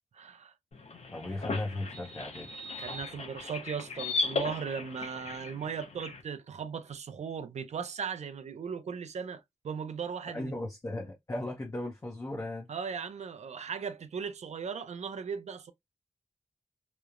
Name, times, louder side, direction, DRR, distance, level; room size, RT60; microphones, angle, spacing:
voice 1, 0.1-0.5 2.8-10.5 12.7-15.7, right 6 dB, 65° right, 0.4 m, -37 dB
sound 1, 0.7-6.2, left 3 dB, 60° left, 0.7 m, -37 dB
voice 2, 1.1-2.5 10.3-12.7, left 1 dB, 25° left, 0.6 m, -36 dB
2.9 x 2.0 x 2.3 m
wide cardioid pair, 130°, 12 cm